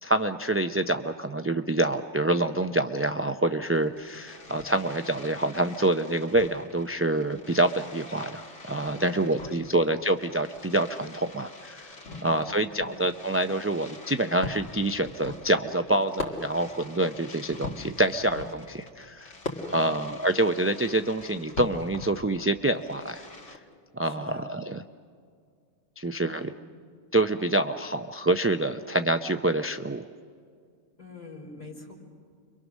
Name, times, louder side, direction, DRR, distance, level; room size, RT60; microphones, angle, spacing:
voice 1, 0.0-11.9 12.2-19.3 19.6-23.6 23.9-24.8 26.0-26.5 27.1-30.0, right 1 dB, 20° right, 7 dB, 0.3 m, -26 dB
Fireworks, 3.7-23.6, left 3 dB, 80° left, 2.3 m, -43 dB
voice 2, 8.9-9.8 12.0-13.1 19.7-20.1 24.0-24.5 26.2-26.5 31.0-31.9, left 3 dB, 35° left, -2 dB, 4.7 m, -46 dB
30.0 x 24.0 x 6.3 m, 2.2 s
omnidirectional pair, 1.2 m